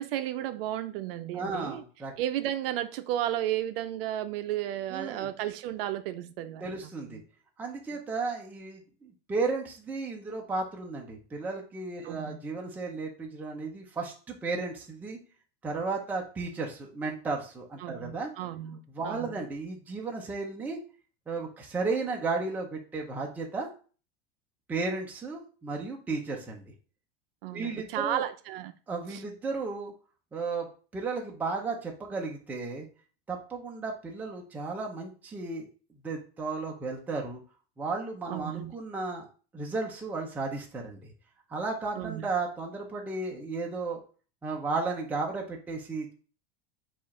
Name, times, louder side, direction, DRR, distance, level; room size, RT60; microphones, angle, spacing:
voice 1, 0.0-1.8 2.2-6.7 7.1-7.2 12.0-12.4 17.8-19.3 27.4-28.7 29.1-29.2 38.3-38.7 42.0-42.3, right 12 dB, 60° right, 0.5 m, -33 dB
voice 2, 1.3-2.1 4.9-5.3 6.6-7.2 7.6-15.2 15.6-18.3 18.9-20.8 21.3-23.7 24.7-26.6 27.5-28.2 28.9-29.9 30.3-30.7 30.9-32.9 33.3-35.7 36.0-37.4 37.8-39.3 39.5-41.1 41.5-44.0 44.4-46.1, right 3 dB, 5° right, 0.5 m, -34 dB
4.8 x 2.5 x 4.1 m
supercardioid pair, 160°, 32 cm